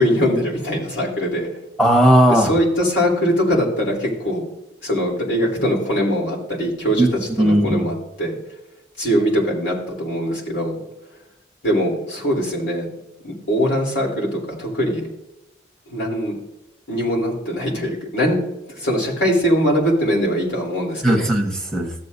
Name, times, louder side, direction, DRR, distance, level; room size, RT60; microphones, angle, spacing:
voice 1, 0.0-1.5 2.3-4.4 4.8-7.1 7.4-8.4 9.0-10.7 11.6-12.9 13.2-15.1 15.9-16.4 16.9-18.4 18.7-21.2, equal, 90° left, -2 dB, 3.5 m, -21 dB
voice 2, 1.8-2.5 7.0-7.1 7.4-7.8 21.0-21.9, right 1 dB, 5° left, 2 dB, 1.2 m, -16 dB
14.5 x 7.5 x 2.7 m, 0.92 s
head